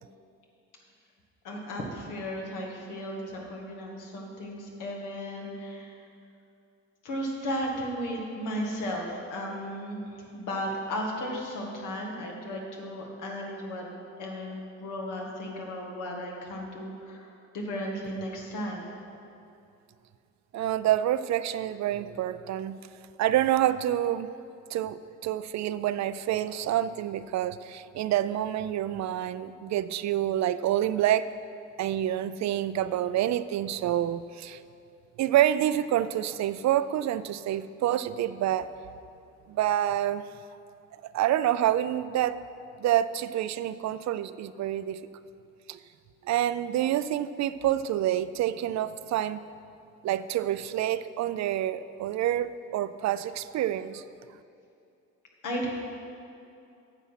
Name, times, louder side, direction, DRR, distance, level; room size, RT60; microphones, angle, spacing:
voice 1, 1.4-5.9 7.0-13.9 14.2-18.9 55.4-55.9, equal, 85° left, -1 dB, 1.8 m, -35 dB
voice 2, 20.5-22.8 23.2-24.3 24.7-31.3 31.8-34.6 35.2-38.7 39.5-40.2 41.0-42.4 42.8-45.0 45.7-45.8 46.2-49.4 50.0-54.0, right 12 dB, 65° right, 14 dB, 0.4 m, -27 dB
9.8 x 7.2 x 5.7 m, 2.6 s
cardioid pair, 90°, 30 cm